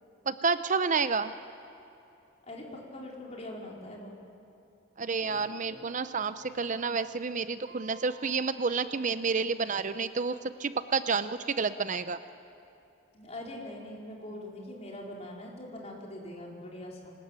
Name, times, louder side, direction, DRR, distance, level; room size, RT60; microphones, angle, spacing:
voice 1, 0.3-1.3 5.0-12.2, right 5 dB, 40° right, 12 dB, 0.6 m, -30 dB
voice 2, 2.5-4.2 13.1-17.1, left 1 dB, 35° left, -2 dB, 4.6 m, -42 dB
Keyboard (musical), 5.2-10.2, right 1 dB, 55° right, 3.1 m, -53 dB
24.0 x 20.5 x 9.0 m, 2.9 s
head